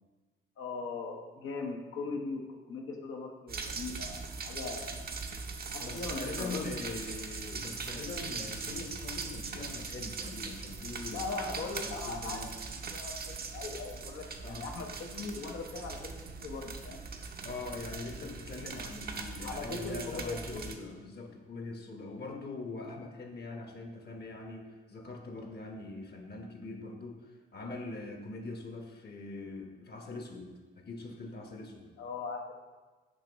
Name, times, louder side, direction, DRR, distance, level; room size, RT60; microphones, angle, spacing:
voice 1, 0.6-5.0 5.7-7.0 11.1-12.4 12.9-17.0 19.4-20.6 32.0-32.6, left 4 dB, 80° left, 1 dB, 0.8 m, -40 dB
sound 1, 3.5-20.7, right 4 dB, 45° right, 0.7 m, -40 dB
voice 2, 5.8-12.5 14.4-14.7 17.4-27.2 27.5-31.9, left 3 dB, 50° left, 3 dB, 1.0 m, -42 dB
6.5 x 3.0 x 5.1 m, 1.3 s
cardioid pair, 60°, 21 cm